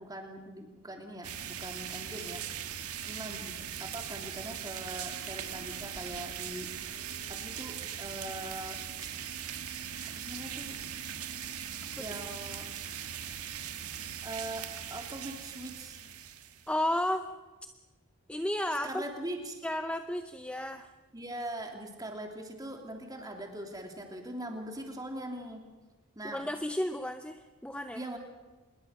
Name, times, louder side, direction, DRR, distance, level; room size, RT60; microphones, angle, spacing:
voice 1, 0.0-2.4 3.0-6.7 7.3-8.9 10.0-10.8 12.0-12.6 14.2-16.1 18.8-19.7 21.1-25.6 26.1-26.4 27.9-28.2, right 1 dB, 15° right, 3 dB, 3.0 m, -41 dB
sound 1, 1.2-16.8, right 9 dB, 85° right, 1.7 m, -40 dB
voice 2, 16.7-17.2 18.3-19.0 19.6-20.9 26.3-28.0, left 1 dB, 5° left, 8 dB, 0.7 m, -32 dB
27.0 x 21.5 x 6.5 m, 1.2 s
head